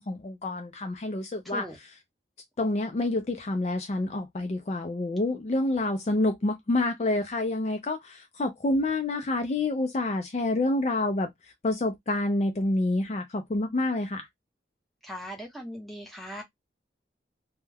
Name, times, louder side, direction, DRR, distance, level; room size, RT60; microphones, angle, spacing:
voice 1, 0.0-1.7 2.6-11.3 11.6-14.3, left 2 dB, 40° left, 0.4 m, -28 dB
voice 2, 1.4-1.8 15.0-16.4, equal, ahead, 0.8 m, -39 dB
2.2 x 2.2 x 3.3 m
head